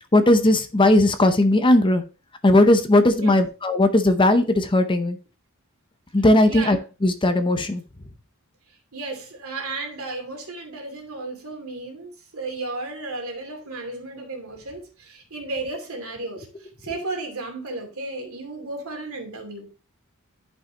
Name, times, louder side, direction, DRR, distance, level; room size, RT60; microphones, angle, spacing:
voice 1, 0.1-2.0 2.4-5.2 6.1-6.8 7.0-7.8, left 1 dB, 25° left, 0.7 m, -17 dB
voice 2, 6.5-6.8 8.9-19.7, right 2 dB, 75° right, 2.6 m, -34 dB
11.0 x 5.5 x 2.9 m
head